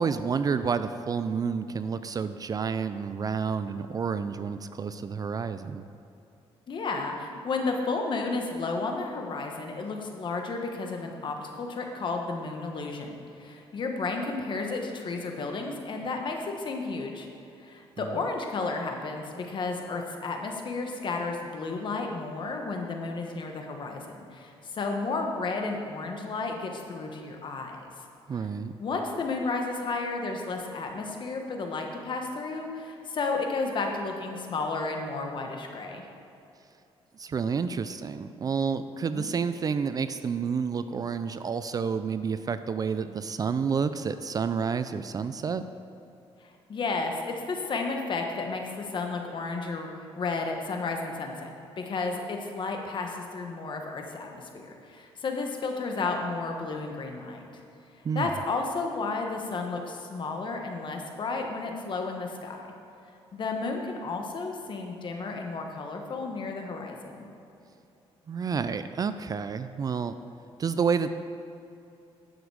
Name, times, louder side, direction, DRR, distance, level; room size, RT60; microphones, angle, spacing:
voice 1, 0.0-5.8 18.0-18.2 28.3-28.7 37.2-45.6 58.0-58.3 68.3-70.1 70.6-71.1, right 6 dB, 35° right, 11 dB, 0.3 m, -29 dB
voice 2, 6.7-17.3 17.6-27.9 28.8-36.0 39.1-39.3 46.4-49.9 50.2-57.4 58.1-62.7 63.3-67.2, left 3 dB, 50° left, 3 dB, 1.3 m, -32 dB
10.0 x 7.1 x 4.8 m, 2.8 s
cardioid pair, 115°, 11 cm